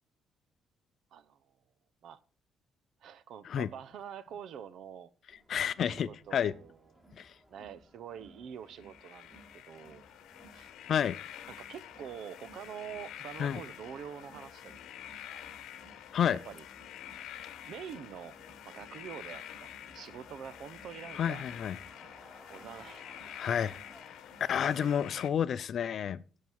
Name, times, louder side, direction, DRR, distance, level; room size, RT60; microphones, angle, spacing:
voice 1, 3.0-5.1 5.8-7.1 7.5-10.1 10.5-10.7 11.6-14.8 15.3-15.4 16.5-16.6 17.7-18.4 18.6-21.5 22.5-23.7 24.6-25.0, right 8 dB, 70° right, 0.7 m, -46 dB
Crowd, 5.3-24.7, right 1 dB, 10° right, 3.6 m, -59 dB
voice 2, 5.5-6.5 7.1-7.3 10.9-11.2 13.4-13.6 16.1-16.4 21.1-21.8 23.4-23.8 24.0-24.2 24.5-26.2, left 8 dB, 55° left, 0.5 m, -30 dB
Concrete mixer Front, 8.7-25.3, left 11 dB, 85° left, 0.9 m, -48 dB
11.0 x 7.4 x 4.6 m
cardioid pair, 125°, 0 cm